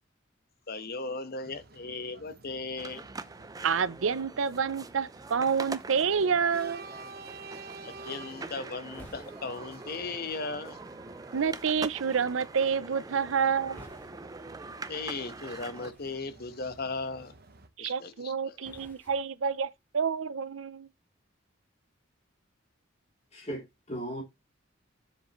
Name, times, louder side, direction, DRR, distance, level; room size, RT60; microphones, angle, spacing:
voice 1, 0.7-3.0 7.8-10.8 14.9-17.3 17.8-18.5, left 3 dB, 50° left, 1.1 m, -37 dB
sound 1, 1.4-17.7, right 3 dB, 50° right, 1.1 m, -51 dB
sound 2, 2.8-15.9, right 3 dB, 20° right, 0.5 m, -44 dB
voice 2, 3.6-6.9 11.3-13.8 17.8-20.9, right 6 dB, 75° right, 0.6 m, -28 dB
sound 3, 8.7-20.1, left 1 dB, 10° left, 3.0 m, -59 dB
voice 3, 23.3-24.2, right 1 dB, 35° left, 3.1 m, -37 dB
7.7 x 7.3 x 3.1 m
head